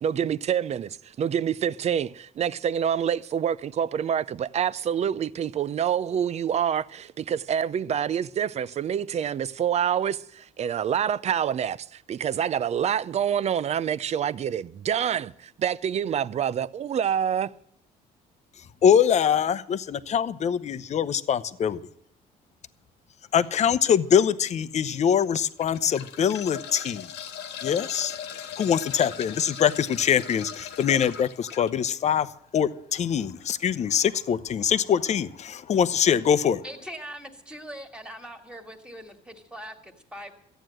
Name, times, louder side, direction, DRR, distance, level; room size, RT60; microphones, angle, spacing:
voice 1, 0.0-17.5, right 8 dB, 40° right, 0.5 m, -27 dB
voice 2, 18.8-21.8 23.3-27.1 27.6-28.1 28.6-32.3 32.5-36.6, left 8 dB, 40° left, 0.7 m, -23 dB
sound 1, 23.4-23.6 24.3-24.4 25.3-31.7 33.3-33.4 33.7-33.8, left 8 dB, 85° left, 1.5 m, -39 dB
voice 3, 36.6-40.3, equal, 5° right, 2.0 m, -41 dB
14.0 x 9.2 x 7.7 m
cardioid pair, 110°, 17 cm